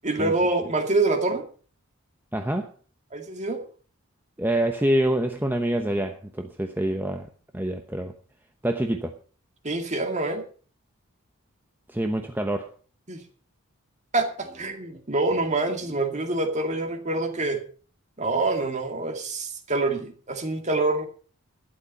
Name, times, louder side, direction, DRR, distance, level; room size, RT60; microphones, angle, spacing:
voice 1, 0.0-1.4 3.1-3.6 9.6-10.4 13.1-13.2 14.1-17.6 18.2-21.1, right 2 dB, 30° right, 5 dB, 2.2 m, -26 dB
voice 2, 2.3-2.7 4.4-7.3 7.5-8.1 8.6-9.1 11.9-12.7, right 1 dB, 10° right, 5 dB, 0.9 m, -26 dB
12.5 x 11.0 x 5.5 m, 0.41 s
head